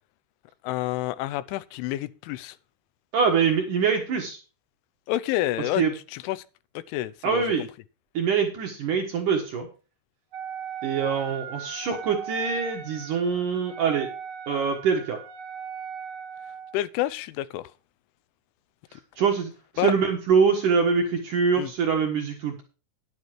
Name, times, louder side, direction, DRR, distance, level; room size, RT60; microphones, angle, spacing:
voice 1, 0.6-2.6 5.1-5.8 6.1-6.4 6.8-7.4 16.7-17.7 18.9-19.0 19.8-19.9 21.6-21.7, left 15 dB, 90° left, 3.1 m, -28 dB
voice 2, 3.1-4.4 5.8-5.9 7.2-7.6 8.1-9.7 10.8-14.1 14.5-15.2 19.2-22.6, right 6 dB, 60° right, 2.3 m, -24 dB
Wind instrument woodwind instrument, 10.3-16.8, right 7 dB, 80° right, 1.7 m, -38 dB
10.5 x 9.5 x 4.5 m
omnidirectional pair, 5.4 m